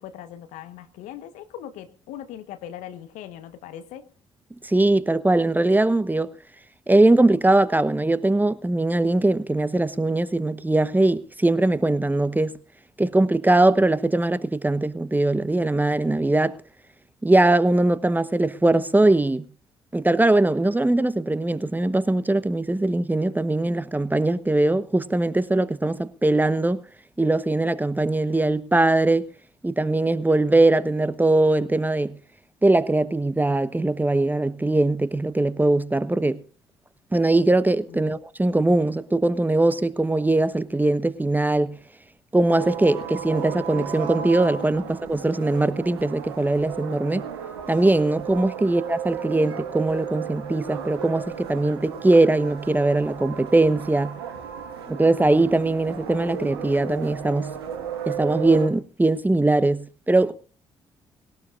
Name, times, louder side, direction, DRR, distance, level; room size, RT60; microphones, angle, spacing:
voice 1, 0.0-4.1 37.9-38.1 44.8-44.9 48.6-48.7, left 11 dB, 75° left, 1.2 m, -40 dB
voice 2, 4.6-6.3 6.9-12.6 13.0-16.6 17.2-19.4 19.9-26.8 27.2-29.3 29.6-32.1 32.6-36.4 37.1-41.8 42.3-47.3 47.7-54.2 54.9-57.5 58.1-60.3, right 2 dB, 15° right, 1.0 m, -21 dB
sound 1, 42.5-58.7, right 8 dB, 90° right, 1.5 m, -34 dB
21.0 x 17.5 x 2.5 m
hypercardioid pair, 45°, 13 cm